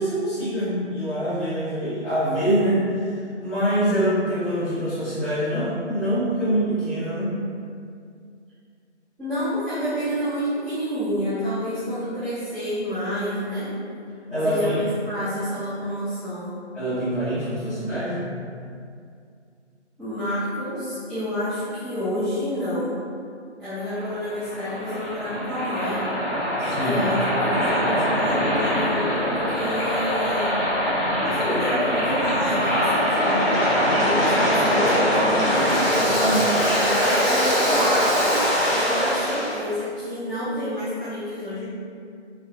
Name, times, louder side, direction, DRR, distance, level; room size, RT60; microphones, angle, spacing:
voice 1, 0.0-7.4 14.3-14.8 16.7-18.3 26.6-27.0 36.0-36.9, right 1 dB, 65° left, -15 dB, 1.4 m, -25 dB
voice 2, 9.2-13.7 14.4-16.6 20.0-23.0 23.6-26.1 26.8-30.6 31.2-33.4 33.9-35.7 36.2-36.5 36.8-41.7, equal, ahead, -15 dB, 0.3 m, -29 dB
Waves surf, 23.8-39.6, equal, 85° left, 1.3 m, -22 dB
2.9 x 2.2 x 2.6 m, 2.3 s
figure-of-eight pair, 170°, 35 cm